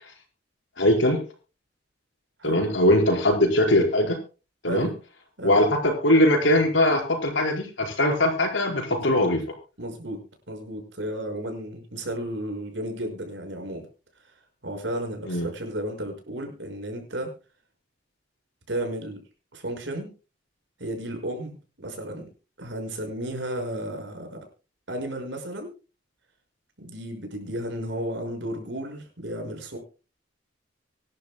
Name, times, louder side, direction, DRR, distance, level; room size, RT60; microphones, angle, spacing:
voice 1, 0.8-1.2 2.4-4.2 4.6-4.9 5.4-9.4 15.3-15.5, left 1 dB, 85° left, 3 dB, 4.8 m, -21 dB
voice 2, 2.4-2.7 4.6-4.9 5.4-5.6 8.9-9.3 9.8-10.2 10.5-13.9 14.6-17.3 18.7-19.2 19.5-20.1 20.8-22.2 22.6-24.4 24.9-25.7 26.8-29.8, right 1 dB, 70° right, 4 dB, 5.7 m, -33 dB
24.5 x 11.5 x 2.2 m, 0.33 s
head